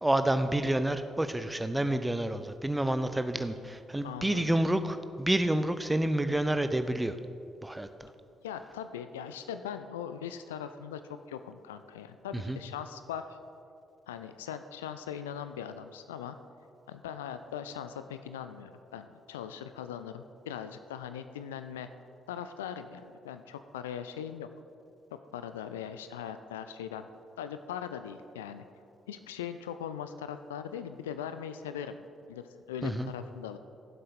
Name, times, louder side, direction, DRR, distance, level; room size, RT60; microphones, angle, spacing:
voice 1, 0.0-7.1 7.6-8.1 12.3-12.6 32.8-33.1, right 1 dB, 10° right, 10 dB, 0.7 m, -29 dB
voice 2, 4.0-4.5 8.4-11.0 11.3-13.3 14.1-16.4 16.9-21.9 22.3-24.5 25.3-27.1 27.4-28.6 29.1-32.0 32.3-32.4 32.7-33.6, left 8 dB, 75° left, 10 dB, 0.4 m, -40 dB
17.5 x 7.6 x 4.2 m, 2.5 s
figure-of-eight pair, 40°, 0 cm